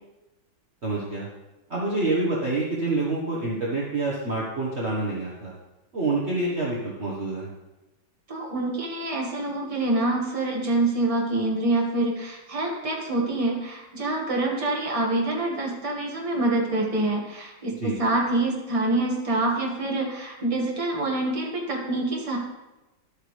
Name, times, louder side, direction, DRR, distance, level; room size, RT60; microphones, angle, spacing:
voice 1, 0.8-1.3 1.7-5.5 5.9-7.5 17.8-18.0, right 2 dB, 40° right, -5 dB, 1.4 m, -27 dB
voice 2, 8.3-22.4, right 2 dB, 20° right, -2 dB, 1.6 m, -26 dB
11.0 x 8.3 x 3.3 m, 1.0 s
omnidirectional pair, 2.0 m